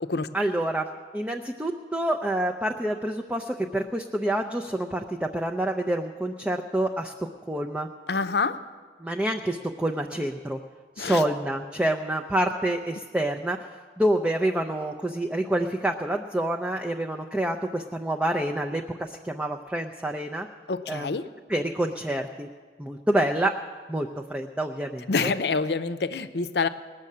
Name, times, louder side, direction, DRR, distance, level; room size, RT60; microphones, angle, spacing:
voice 1, 0.3-7.9 9.0-10.6 11.0-13.6 14.0-20.5 20.9-21.2 21.5-22.5 22.8-23.6 23.9-25.3, right 1 dB, 5° right, 1 dB, 0.4 m, -27 dB
voice 2, 8.1-8.6 11.0-11.2 20.7-21.2 25.1-26.7, left 4 dB, 75° left, 10 dB, 0.6 m, -26 dB
19.5 x 6.6 x 8.4 m, 1.5 s
head